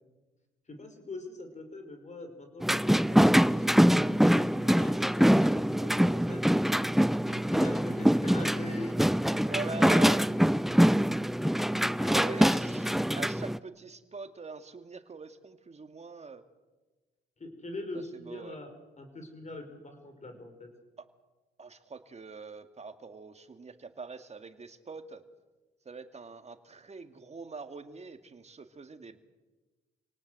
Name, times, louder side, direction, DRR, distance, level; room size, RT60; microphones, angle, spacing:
voice 1, 0.7-4.0 4.3-6.4 6.7-9.4 9.7-9.8 11.8-12.4 17.4-18.7 19.0-20.7, left 2 dB, 35° left, 6 dB, 5.4 m, -43 dB
sound 1, 2.6-13.6, equal, ahead, 0.7 m, -24 dB
voice 2, 9.3-10.3 12.1-16.4 17.9-18.6 21.0-21.1 21.6-25.2 25.8-29.2, right 4 dB, 35° right, 8 dB, 2.2 m, -42 dB
27.5 x 18.5 x 7.9 m, 1.2 s
supercardioid pair, 65°, 20 cm